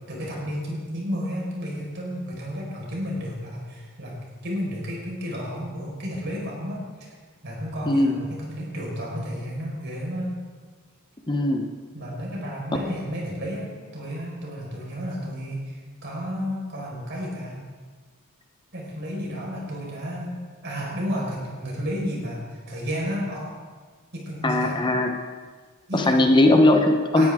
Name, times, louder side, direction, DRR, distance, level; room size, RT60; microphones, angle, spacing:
voice 1, 0.1-7.1 7.4-10.3 11.9-17.6 18.7-23.5 24.1-24.8 25.9-26.2 27.1-27.3, equal, 55° right, -3 dB, 5.1 m, -32 dB
voice 2, 7.9-8.2 11.3-11.7 24.4-25.1 25.9-27.3, left 2 dB, 20° left, 4 dB, 1.0 m, -19 dB
19.5 x 13.0 x 3.7 m, 1.5 s
head